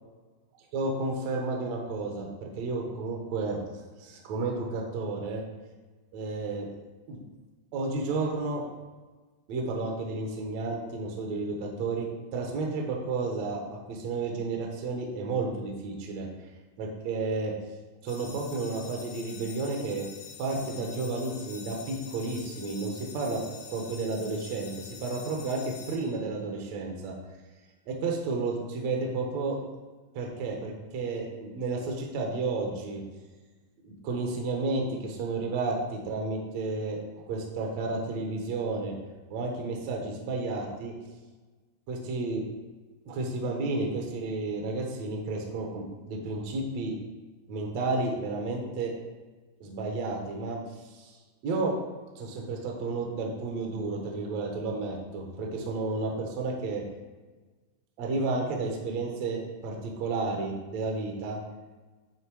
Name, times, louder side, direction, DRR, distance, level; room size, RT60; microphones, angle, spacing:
voice 1, 0.7-3.6 4.0-5.4 6.1-6.7 7.1-7.2 7.7-8.6 9.5-12.1 12.3-16.3 16.8-17.5 18.0-20.1 20.4-23.4 23.7-27.1 27.9-29.6 30.2-33.0 33.8-37.0 37.3-38.9 39.3-40.9 41.9-42.4 43.1-47.0 47.5-48.9 49.6-50.6 50.9-51.1 51.4-51.7 52.2-56.8 58.0-61.4, right 3 dB, 70° right, 0 dB, 1.6 m, -32 dB
sound 1, 18.1-26.7, left 6 dB, 75° left, 2.1 m, -46 dB
9.4 x 3.3 x 4.7 m, 1.3 s
omnidirectional pair, 4.5 m